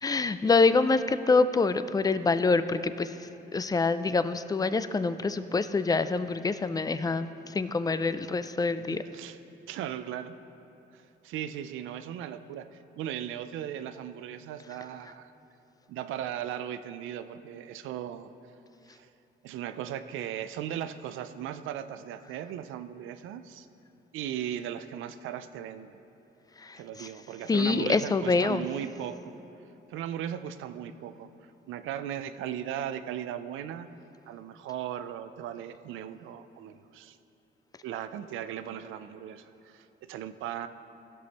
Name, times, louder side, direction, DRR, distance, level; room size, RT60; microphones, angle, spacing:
voice 1, 0.0-3.1 3.5-9.0 26.6-27.1 27.5-28.7, left 4 dB, 20° left, 12 dB, 0.4 m, -26 dB
voice 2, 8.9-9.4 9.7-10.4 10.9-15.3 15.9-18.3 18.9-19.1 19.4-23.7 24.1-26.0 26.8-29.3 29.9-33.9 34.3-37.2 37.8-40.7, right 10 dB, 85° right, 11 dB, 0.5 m, -37 dB
15.5 x 6.2 x 4.2 m, 2.9 s
cardioid pair, 90°, 20 cm